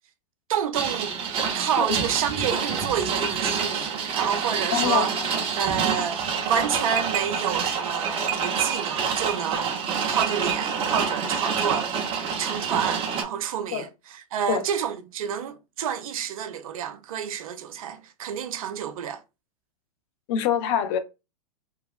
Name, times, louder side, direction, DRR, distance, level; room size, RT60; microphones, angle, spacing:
voice 1, 0.5-1.2 1.5-5.1 5.6-11.9 12.3-19.2, right 8 dB, 60° right, 0.6 m, -29 dB
sound 1, 0.7-13.2, right 6 dB, 30° right, 0.8 m, -27 dB
voice 2, 4.7-5.3 13.7-13.9 14.5-14.6 20.3-21.0, left 8 dB, 45° left, 0.6 m, -25 dB
3.0 x 2.4 x 2.4 m
hypercardioid pair, 100°, 20 cm